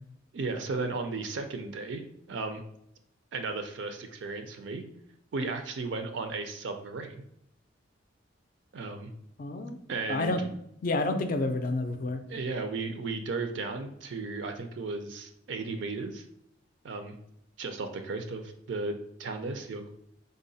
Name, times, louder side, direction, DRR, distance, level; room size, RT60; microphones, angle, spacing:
voice 1, 0.3-2.0 2.3-2.6 3.3-4.8 5.3-7.2 8.7-9.1 9.9-10.5 12.3-16.3 16.8-17.2 17.6-19.9, right 3 dB, 65° right, 6 dB, 0.4 m, -35 dB
voice 2, 9.4-9.8 10.1-10.4 10.8-12.2, left 2 dB, 45° left, 7 dB, 0.4 m, -29 dB
3.8 x 2.1 x 3.9 m, 0.74 s
head